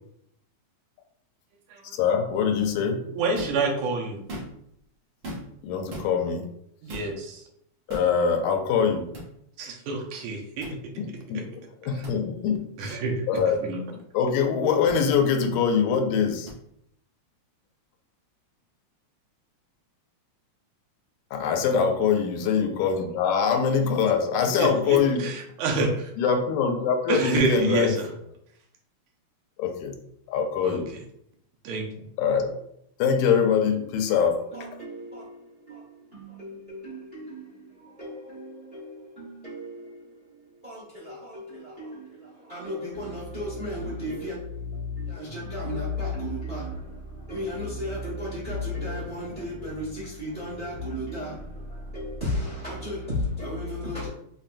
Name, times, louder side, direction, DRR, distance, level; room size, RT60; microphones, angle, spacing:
voice 1, 2.0-3.0 5.6-6.5 7.9-9.1 11.0-11.5 11.8-13.0 13.3-16.5 21.3-25.3 26.2-28.0 29.6-29.9 30.3-30.9 32.2-32.5 33.0-34.4, left 6 dB, 85° left, 1.9 m, -24 dB
voice 2, 3.1-4.2 6.8-7.4 9.6-10.7 12.8-13.3 13.6-13.8 24.6-26.1 27.1-28.1 30.6-30.8 31.6-31.8, right 3 dB, 85° right, 2.1 m, -27 dB
sound 1, 3.3-3.6 4.2-4.7 5.2-5.6 5.9-6.1 6.9-7.1 7.9-8.1 9.1-9.3 10.6-10.8 12.0-12.2 13.3-13.4 14.9-15.0 16.5-16.6, equal, 60° right, 1.2 m, -38 dB
voice 3, 34.1-54.1, left 1 dB, 40° right, 0.7 m, -34 dB
5.6 x 2.2 x 2.5 m
omnidirectional pair, 3.3 m